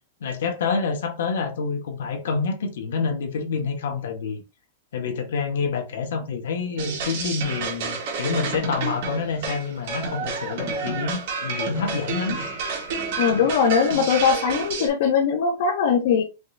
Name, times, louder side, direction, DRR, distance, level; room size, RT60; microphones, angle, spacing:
voice 1, 0.2-4.4 4.9-12.6 12.9-13.1, left 5 dB, 80° left, 1.3 m, -27 dB
sound 1, 6.8-14.9, right 4 dB, 55° right, 1.8 m, -30 dB
voice 2, 13.2-16.2, left 6 dB, 60° left, 1.0 m, -20 dB
5.1 x 3.0 x 2.7 m
supercardioid pair, 160°, 0 cm